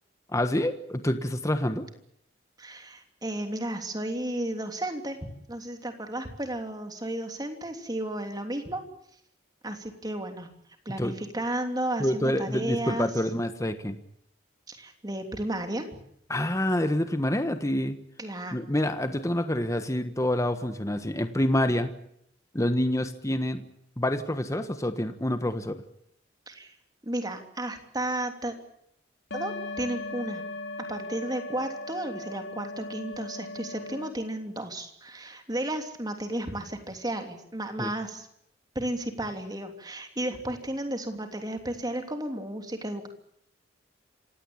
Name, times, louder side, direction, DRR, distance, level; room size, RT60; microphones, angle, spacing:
voice 1, 0.3-1.9 11.0-11.1 12.0-14.0 16.3-18.0 18.5-21.9 22.5-23.6 24.0-25.8 37.8-37.9, left 1 dB, 15° left, 9 dB, 1.3 m, -27 dB
voice 2, 2.6-5.2 5.5-8.8 9.6-10.5 10.8-13.1 14.7-15.9 18.2-18.6 26.5-26.7 27.0-28.5 29.3-30.4 30.9-38.3 38.7-43.1, right 1 dB, 20° right, 5 dB, 3.1 m, -33 dB
sound 1, 29.3-34.1, left 2 dB, 70° left, 3.2 m, -38 dB
27.0 x 17.0 x 8.7 m, 0.74 s
head